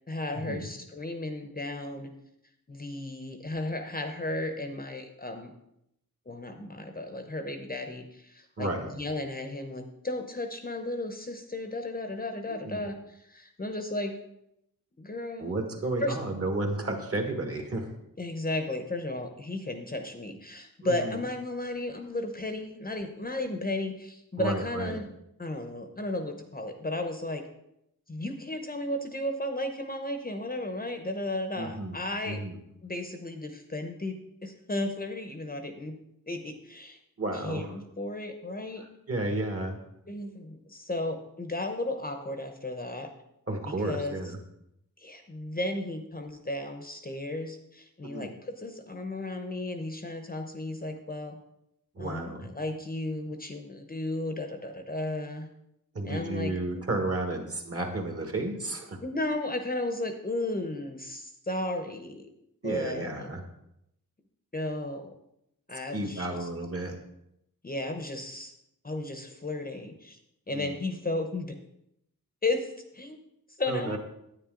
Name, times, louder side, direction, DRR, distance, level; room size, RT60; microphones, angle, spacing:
voice 1, 0.1-2.1 2.7-5.5 6.3-14.2 15.0-15.5 16.0-16.2 18.2-25.1 25.4-27.5 28.1-32.4 32.8-36.0 36.3-37.0 37.3-38.9 40.1-43.1 43.7-44.2 45.0-51.4 52.0-55.5 56.0-56.9 59.0-62.3 62.6-63.3 64.5-65.2 65.7-66.5 67.6-68.5 68.8-70.2 70.5-71.6 72.4-73.2 73.6-74.0, left 2 dB, 25° left, 6 dB, 0.8 m, -34 dB
voice 2, 8.6-8.9 12.5-12.8 15.4-17.9 20.8-21.2 24.4-25.0 31.6-32.0 32.2-32.6 37.2-37.7 39.1-39.8 43.5-44.4 48.0-48.3 51.9-52.5 55.9-59.0 62.6-63.4 65.9-66.9 70.5-70.7 73.7-74.0, right 2 dB, 40° right, 4 dB, 1.6 m, -32 dB
9.9 x 9.2 x 3.8 m, 0.80 s
wide cardioid pair, 140°, 35 cm